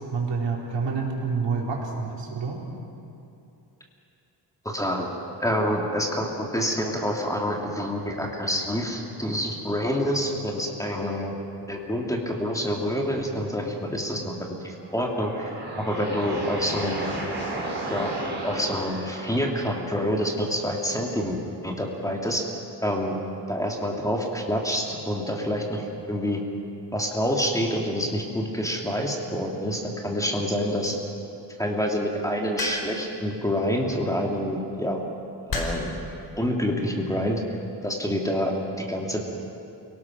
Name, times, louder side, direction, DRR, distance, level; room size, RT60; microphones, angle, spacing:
voice 1, 0.1-2.6, right 4 dB, 75° right, -2 dB, 4.4 m, -28 dB
voice 2, 4.6-5.1 5.4-11.3 11.7-14.3 14.6-15.4 15.8-17.1 17.9-18.1 18.4-22.4 22.8-23.1 23.5-26.4 26.9-31.0 31.6-35.0 35.5-35.9 36.4-37.4 37.8-39.2, equal, 5° left, 0 dB, 2.5 m, -27 dB
sound 1, 14.8-19.8, right 2 dB, 25° right, 6.6 m, -33 dB
sound 2, 32.6-33.1 34.3-34.6 35.5-36.0 36.9-37.3, left 2 dB, 55° left, 5.0 m, -31 dB
28.5 x 18.5 x 6.1 m, 2.7 s
wide cardioid pair, 115°, 44 cm